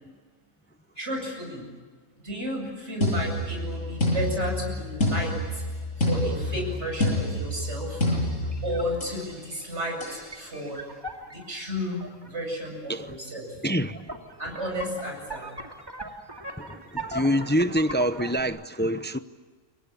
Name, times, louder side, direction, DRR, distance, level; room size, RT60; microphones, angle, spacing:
voice 1, 1.0-1.7 2.2-5.6 6.0-8.0 8.6-10.8 11.3-13.5 14.4-15.5, equal, 60° right, 8.6 m, -33 dB
sound 1, 3.0-9.3 10.0-10.3, left 1 dB, 80° left, 8.3 m, -28 dB
sound 2, 8.0-12.3 13.3-13.4 13.7-18.4, right 1 dB, 20° right, 2.6 m, -40 dB
voice 2, 13.6-14.2 14.5-14.6 16.6-19.2, equal, 10° left, 0.6 m, -26 dB
29.0 x 23.5 x 8.5 m
omnidirectional pair, 1.3 m